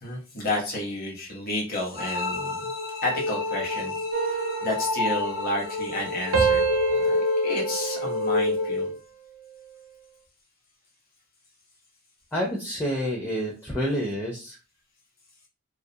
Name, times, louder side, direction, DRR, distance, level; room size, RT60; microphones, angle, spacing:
voice 1, 0.0-2.7 3.0-6.6 6.9-8.9, left 1 dB, 45° left, -1 dB, 0.9 m, -31 dB
sound 1, 2.0-8.9, left 3 dB, 75° left, 0.9 m, -28 dB
sound 2, 4.1-6.0 6.3-8.9 9.4-9.7, right 6 dB, 80° right, 0.5 m, -29 dB
voice 2, 12.3-14.6, equal, 10° left, -2 dB, 0.4 m, -28 dB
2.4 x 2.3 x 2.7 m, 0.33 s
head